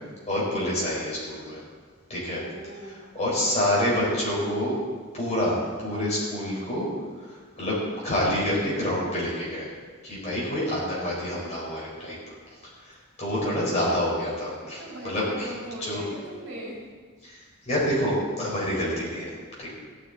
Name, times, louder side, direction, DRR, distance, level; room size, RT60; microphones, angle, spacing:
voice 1, 0.3-1.6 2.1-2.4 2.8-4.8 5.1-6.9 7.2-9.7 10.0-12.4 12.8-15.5 15.8-16.0 17.2-19.2 19.6-19.7, left 1 dB, 30° left, -6 dB, 4.5 m, -27 dB
voice 2, 2.3-3.1 14.6-16.8, right 1 dB, 55° right, -5 dB, 3.7 m, -40 dB
15.0 x 11.5 x 4.1 m, 1.5 s
head